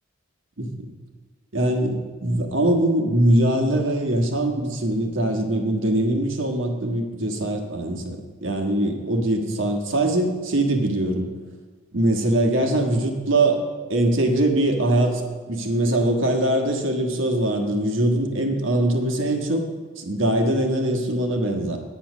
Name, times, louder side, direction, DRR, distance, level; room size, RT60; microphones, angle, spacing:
voice 1, 0.6-0.9 1.5-8.2 8.4-11.3 11.9-13.6 13.9-19.6 20.0-21.8, right 1 dB, 70° right, 3 dB, 1.5 m, -22 dB
9.3 x 8.9 x 6.2 m, 1.5 s
head